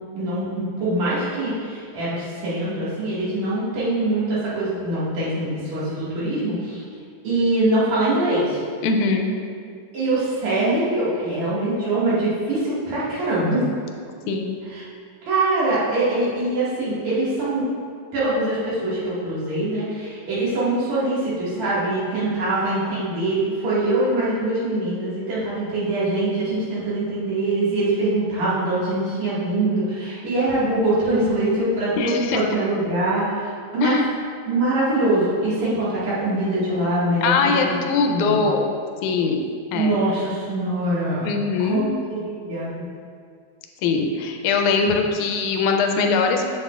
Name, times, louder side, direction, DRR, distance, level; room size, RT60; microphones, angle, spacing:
voice 1, 0.1-6.8 7.2-8.6 9.9-13.6 14.7-14.8 15.3-17.6 18.1-33.5 33.7-34.0 34.5-37.5 38.1-38.4 39.7-41.4 41.7-41.8 42.1-42.9, right 2 dB, 65° right, -10 dB, 3.2 m, -23 dB
voice 2, 8.8-9.3 14.3-14.6 32.0-32.4 33.8-34.1 37.2-38.7 39.0-39.4 39.7-40.0 41.2-41.9 43.8-46.5, left 4 dB, 90° left, 4 dB, 2.0 m, -21 dB
7.5 x 7.1 x 2.4 m, 2.1 s
omnidirectional pair, 3.4 m